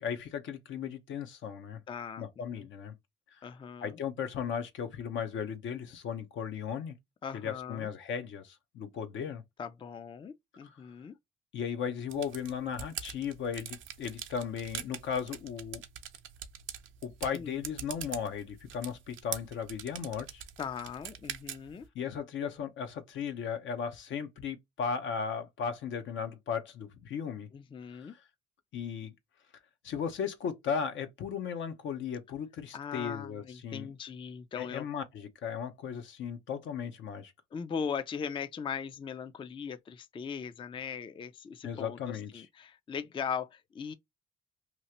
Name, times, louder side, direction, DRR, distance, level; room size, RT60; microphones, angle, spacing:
voice 1, 0.0-1.8 2.2-2.9 3.8-6.9 7.3-9.4 10.6-10.8 11.5-15.8 17.0-20.4 21.9-27.5 27.9-28.2 28.7-29.1 29.8-33.9 34.6-37.3 41.6-42.4, left 7 dB, 75° left, 0.8 m, -36 dB
voice 2, 1.9-2.7 3.4-4.0 7.2-7.9 9.6-11.2 17.3-17.6 20.6-21.9 27.5-28.1 32.7-34.9 37.5-43.9, left 7 dB, 25° left, 0.3 m, -39 dB
sound 1, 12.1-21.9, right 10 dB, 80° right, 0.6 m, -44 dB
3.0 x 2.4 x 2.9 m
cardioid pair, 90°, 20 cm